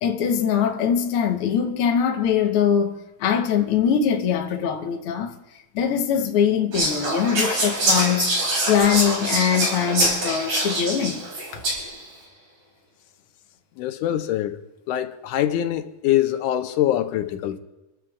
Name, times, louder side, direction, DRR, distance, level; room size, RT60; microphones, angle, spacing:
voice 1, 0.0-5.3 5.7-8.3 8.7-11.2 11.5-11.6, left 8 dB, 60° left, 1.5 m, -22 dB
Whispering, 6.7-12.0, right 1 dB, 55° right, 5.2 m, -24 dB
voice 2, 13.8-14.6 14.9-17.6, left 12 dB, 90° left, 2.2 m, -24 dB
28.0 x 13.5 x 2.4 m
omnidirectional pair, 3.5 m